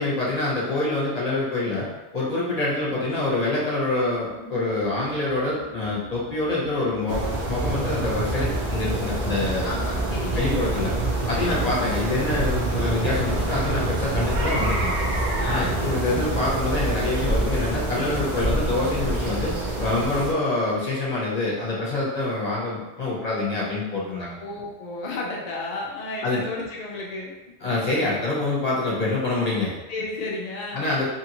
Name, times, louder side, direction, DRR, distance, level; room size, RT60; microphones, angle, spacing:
voice 1, 0.0-9.7 10.3-10.9 11.3-14.9 15.5-19.5 19.8-24.3 26.2-26.4 27.6-29.7 30.7-31.1, left 2 dB, 35° left, -6 dB, 0.9 m, -26 dB
sound 1, 3.7-13.5, right 1 dB, 10° right, 0.8 m, -42 dB
sound 2, 7.1-20.3, right 2 dB, 55° right, 0.5 m, -26 dB
voice 2, 9.6-10.6 11.4-11.8 15.4-16.2 24.4-27.3 29.9-30.9, left 2 dB, 65° left, -3 dB, 0.4 m, -33 dB
2.8 x 2.6 x 2.8 m, 1.1 s
omnidirectional pair, 1.2 m